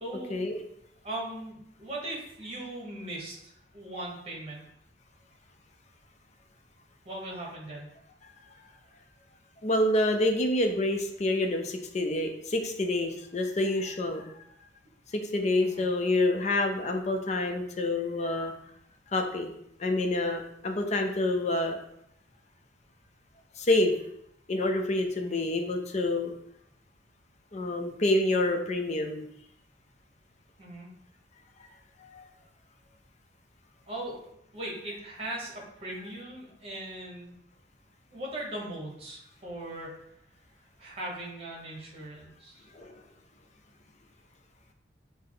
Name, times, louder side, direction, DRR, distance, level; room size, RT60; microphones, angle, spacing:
voice 1, 0.0-0.5 1.0-4.7 7.0-7.9 15.6-15.9 25.2-25.4 30.6-30.9 33.9-37.4 38.1-39.9 40.8-42.6, right 1 dB, 35° right, -2 dB, 1.2 m, -39 dB
voice 2, 9.6-14.3 15.1-18.5 19.1-19.5 19.8-21.8 23.6-23.9 24.5-26.3 27.5-29.2 32.1-32.2 42.7-42.9, left 2 dB, 40° left, 5 dB, 0.5 m, -27 dB
5.6 x 2.1 x 3.8 m, 0.76 s
head